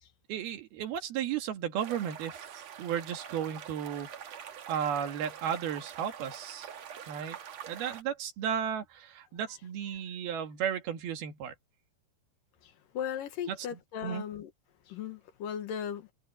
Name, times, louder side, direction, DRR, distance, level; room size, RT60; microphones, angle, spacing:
voice 1, 0.3-4.1 4.7-6.7 7.1-7.4 7.7-11.5 13.5-14.3, right 8 dB, 80° right, 3.9 m, -34 dB
sound 1, 1.8-8.0, right 8 dB, 55° right, 2.3 m, -45 dB
voice 2, 12.6-14.5 14.9-16.1, left 9 dB, 70° left, 2.9 m, -37 dB
omnidirectional pair, 4.3 m